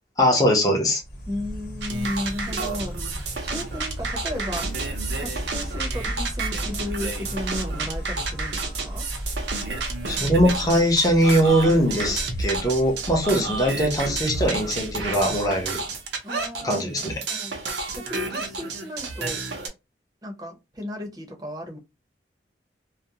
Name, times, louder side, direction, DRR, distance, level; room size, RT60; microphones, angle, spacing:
voice 1, 0.2-1.0 10.1-15.8 16.6-17.1, equal, 20° left, 0.6 m, -21 dB
Insect, 1.0-16.1, equal, 60° left, 0.9 m, -35 dB
voice 2, 1.3-4.7 5.2-9.1 13.3-13.6 16.2-17.5 17.9-19.4 20.2-21.8, left 1 dB, 20° right, 0.7 m, -34 dB
sound 1, 1.8-19.7, right 4 dB, 70° right, 0.7 m, -31 dB
2.4 x 2.0 x 2.8 m
head